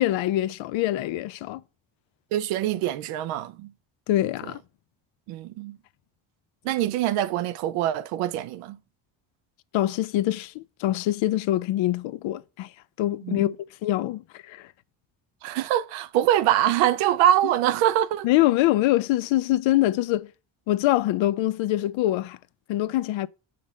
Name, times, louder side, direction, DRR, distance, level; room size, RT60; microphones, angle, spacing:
voice 1, 0.0-1.6 4.1-4.6 9.7-12.7 13.0-13.6 13.8-14.7 18.2-20.3 20.7-22.4 22.7-23.3, left 15 dB, 65° left, 0.5 m, -24 dB
voice 2, 2.3-3.7 4.4-4.5 5.3-5.8 6.6-8.8 13.2-13.5 15.4-18.3, right 12 dB, 85° right, 0.6 m, -24 dB
5.3 x 3.9 x 5.4 m
supercardioid pair, 60°, 50 cm